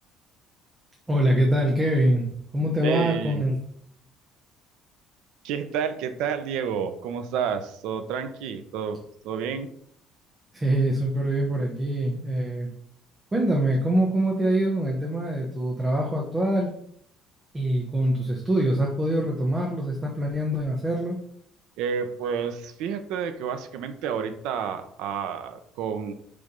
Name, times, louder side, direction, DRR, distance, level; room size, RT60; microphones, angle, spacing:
voice 1, 1.1-3.6 10.5-12.7 13.3-16.7 17.5-21.2, right 1 dB, 15° right, -1 dB, 1.0 m, -24 dB
voice 2, 2.8-3.4 5.4-9.7 21.8-26.1, right 7 dB, 75° right, 9 dB, 0.8 m, -30 dB
6.8 x 3.4 x 5.3 m, 0.66 s
cardioid pair, 160°, 0 cm